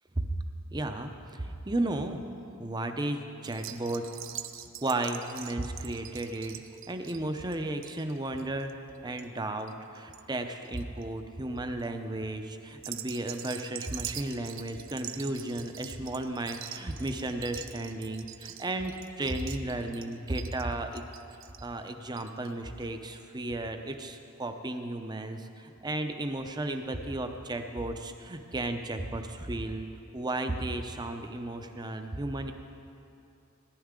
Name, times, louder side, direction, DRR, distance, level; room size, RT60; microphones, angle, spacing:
voice 1, 0.7-2.2 2.6-4.0 4.8-6.6 6.9-8.7 9.0-21.0 21.6-29.9 30.1-32.5, right 2 dB, 20° right, 6 dB, 0.6 m, -34 dB
sound 1, 3.4-10.2 10.5-11.0 11.6-11.9 12.7-22.5 22.8-22.9 23.1-23.2, right 11 dB, 65° right, 0.5 m, -44 dB
17.5 x 10.5 x 3.7 m, 2.7 s
head